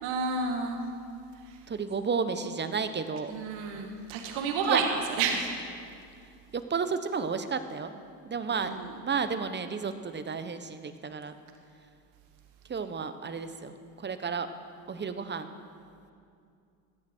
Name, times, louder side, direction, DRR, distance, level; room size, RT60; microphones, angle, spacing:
voice 1, 0.0-0.8 3.3-4.9 5.2-5.5 8.5-8.9, right 5 dB, 75° right, 3 dB, 1.8 m, -30 dB
voice 2, 1.7-3.3 4.7-4.8 6.5-7.9 8.2-11.3 12.7-13.7 14.0-14.5 14.9-15.5, right 5 dB, 25° right, 10 dB, 1.0 m, -32 dB
18.5 x 13.0 x 4.5 m, 2.4 s
supercardioid pair, 95°, 47 cm